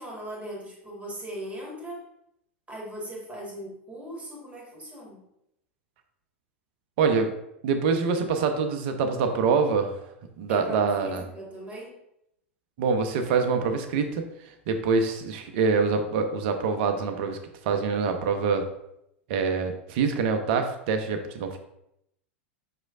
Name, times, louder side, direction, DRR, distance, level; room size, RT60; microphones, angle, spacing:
voice 1, 0.0-2.0 2.7-5.2 10.5-12.0, right 1 dB, 20° right, -3 dB, 1.6 m, -39 dB
voice 2, 7.0-7.3 7.6-9.9 10.4-11.2 12.8-14.2 14.7-17.4 17.7-18.7 19.3-21.6, right 5 dB, 55° right, 6 dB, 0.6 m, -25 dB
5.7 x 3.0 x 2.4 m, 0.80 s
hypercardioid pair, 90°, 7 cm